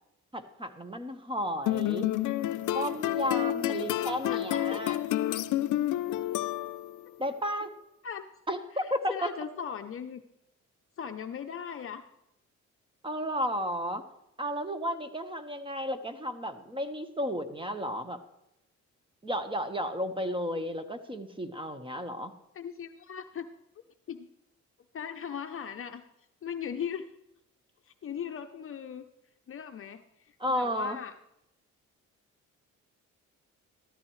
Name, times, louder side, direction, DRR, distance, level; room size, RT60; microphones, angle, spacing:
voice 1, 0.3-2.1 2.7-5.0 7.2-7.7 8.5-9.3 13.0-14.0 14.4-18.2 19.2-22.3 30.4-31.0, equal, 15° right, 8 dB, 1.3 m, -33 dB
sound 1, 1.7-7.0, left 13 dB, 80° left, 0.6 m, -29 dB
voice 2, 4.2-4.8 8.0-8.2 8.7-10.2 11.0-12.0 22.5-23.5 24.1-24.3 24.9-26.0 26.4-27.1 27.9-29.0 29.5-30.0 30.3-31.1, left 8 dB, 45° left, 7 dB, 0.7 m, -38 dB
13.5 x 13.5 x 3.2 m, 0.83 s
cardioid pair, 90°, 30 cm